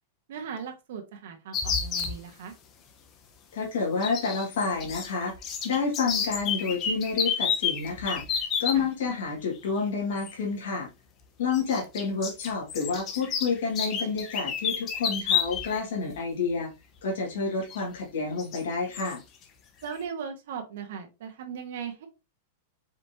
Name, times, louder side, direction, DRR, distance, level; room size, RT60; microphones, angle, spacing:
voice 1, 0.3-2.5 8.7-8.9 19.8-22.1, right 7 dB, 65° right, 1.2 m, -38 dB
sound 1, 1.5-2.1 4.0-5.1 5.3-8.8 10.2-10.3 11.5-15.8 16.1-16.2 17.7-17.8 18.4-18.6 18.9-19.2, left 7 dB, 25° left, 0.7 m, -30 dB
voice 2, 3.5-5.3 5.6-10.9 11.4-16.7 17.0-19.2, left 4 dB, 80° left, 1.9 m, -29 dB
5.0 x 3.2 x 2.8 m
supercardioid pair, 160°, 0 cm